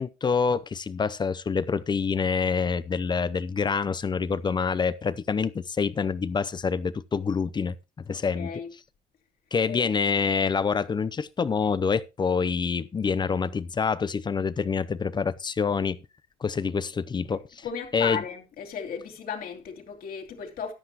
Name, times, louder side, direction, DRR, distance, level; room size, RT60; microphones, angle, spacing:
voice 1, 0.0-8.5 9.5-16.0 16.4-17.6 17.9-18.2, left 5 dB, 25° left, 0.6 m, -26 dB
voice 2, 8.1-8.7 9.7-9.9 17.3-20.7, left 7 dB, 60° left, 2.9 m, -35 dB
14.0 x 10.0 x 2.9 m
cardioid pair, 110°, 17 cm